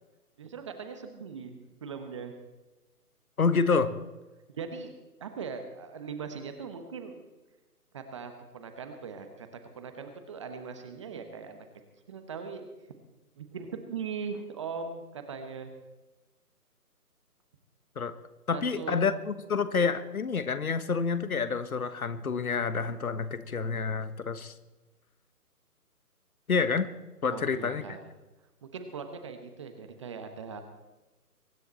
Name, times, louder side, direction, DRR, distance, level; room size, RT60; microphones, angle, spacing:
voice 1, 0.4-2.4 4.5-4.9 5.2-7.2 7.9-9.5 9.8-11.6 12.1-12.7 13.4-15.7 18.5-19.0 27.3-28.0 28.6-30.6, right 5 dB, 20° right, 7 dB, 1.0 m, -40 dB
voice 2, 3.4-3.9 17.9-18.1 18.5-24.5 26.5-26.9 27.2-27.8, left 5 dB, 65° left, 12 dB, 1.4 m, -28 dB
23.0 x 10.5 x 4.2 m, 1.1 s
figure-of-eight pair, 145°, 47 cm